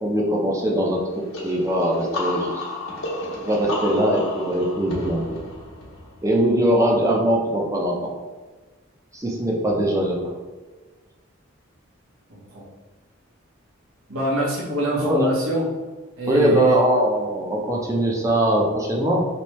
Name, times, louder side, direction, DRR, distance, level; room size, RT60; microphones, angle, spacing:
voice 1, 0.0-2.7 3.4-5.4 6.2-8.1 9.1-10.3 15.0-15.3 16.3-19.2, right 1 dB, 15° right, -2 dB, 0.5 m, -21 dB
sound 1, 1.3-6.9, left 1 dB, 85° left, 1.0 m, -32 dB
voice 2, 12.3-12.6 14.1-15.7 16.2-16.8, equal, 90° right, -4 dB, 1.1 m, -25 dB
3.2 x 3.0 x 3.1 m, 1.3 s
head